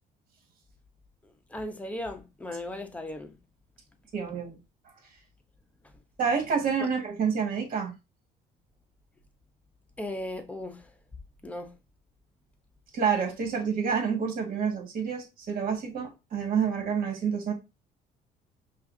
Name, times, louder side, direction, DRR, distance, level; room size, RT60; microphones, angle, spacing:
voice 1, 1.5-3.3 6.8-6.9 10.0-10.9 11.4-11.7, left 1 dB, 10° left, 0.8 m, -36 dB
voice 2, 4.1-4.6 6.2-7.9 12.9-17.5, right 6 dB, 55° right, 1.8 m, -28 dB
5.6 x 2.5 x 2.7 m
cardioid pair, 110°, 17 cm